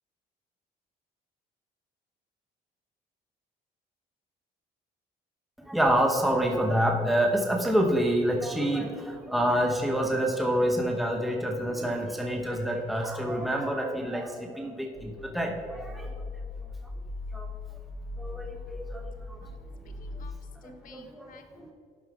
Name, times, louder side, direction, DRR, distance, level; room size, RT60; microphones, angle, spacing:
voice 1, 5.7-16.1 17.3-17.5 18.2-19.4 20.6-21.3 21.6-21.7, equal, ahead, 1 dB, 1.1 m, -27 dB
sound 1, 14.9-20.3, left 2 dB, 25° right, 1.5 m, -39 dB
voice 2, 19.8-21.7, left 6 dB, 55° left, 7 dB, 1.2 m, -55 dB
11.5 x 7.5 x 3.6 m, 2.2 s
cardioid pair, 110°, 17 cm